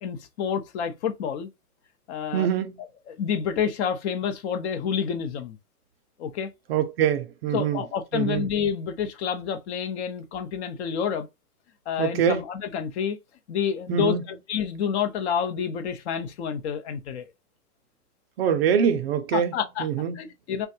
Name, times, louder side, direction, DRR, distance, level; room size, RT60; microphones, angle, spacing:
voice 1, 0.0-1.5 2.1-2.5 2.8-5.6 6.2-6.5 7.5-11.3 11.9-13.2 13.5-17.2 19.3-19.9 20.1-20.7, left 7 dB, 45° left, 0.6 m, -28 dB
voice 2, 2.3-2.7 6.7-7.8 8.1-8.5 12.0-12.4 13.9-14.2 18.4-19.5 19.8-20.2, right 8 dB, 45° right, 0.4 m, -24 dB
3.4 x 2.2 x 2.6 m
hypercardioid pair, 145°, 45 cm